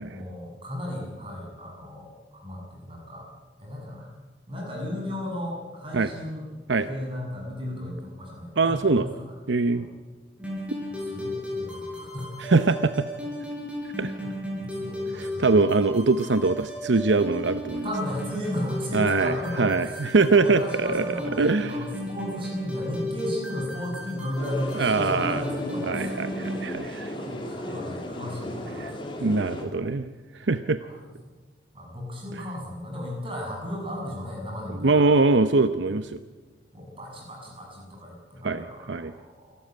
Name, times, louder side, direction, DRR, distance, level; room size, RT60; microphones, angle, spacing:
voice 1, 0.0-3.3 3.6-4.1 4.5-6.4 6.8-9.3 9.7-9.9 10.9-12.4 14.2-15.6 17.8-26.4 27.2-29.2 30.8-31.0 31.7-35.0 36.7-39.6, left 1 dB, 30° right, -1 dB, 7.2 m, -35 dB
voice 2, 8.6-9.1 9.5-9.8 12.4-12.9 14.0-14.1 15.1-17.8 18.9-21.0 21.4-21.8 24.8-25.4 25.9-27.1 28.8-28.9 29.2-30.1 30.4-30.8 32.3-32.4 34.7-36.2 38.4-39.1, right 3 dB, 75° right, 11 dB, 0.8 m, -23 dB
sound 1, 10.4-26.7, left 1 dB, 5° right, 5.5 m, -34 dB
sound 2, 24.4-29.7, left 1 dB, 25° left, 2.9 m, -36 dB
27.5 x 13.0 x 9.2 m, 1.3 s
head